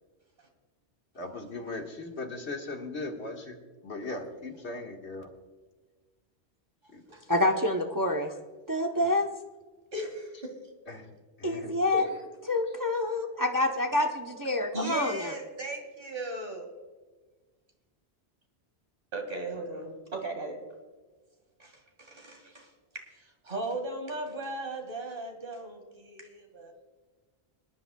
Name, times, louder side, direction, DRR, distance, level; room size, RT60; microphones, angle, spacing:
voice 1, 1.2-3.6 3.8-5.3 6.9-7.0 9.0-9.1 10.9-11.1 11.4-11.7, left 2 dB, 85° left, 1 dB, 2.0 m, -38 dB
voice 2, 7.3-8.3 8.7-9.3 11.4-12.0 12.5-15.3, left 1 dB, 20° right, 2 dB, 0.7 m, -27 dB
voice 3, 9.9-10.6 11.9-12.2 14.7-16.7 19.1-20.7 21.6-22.7 22.9-26.7, right 2 dB, 55° right, 3 dB, 2.3 m, -37 dB
25.0 x 11.0 x 2.3 m, 1.3 s
omnidirectional pair, 1.1 m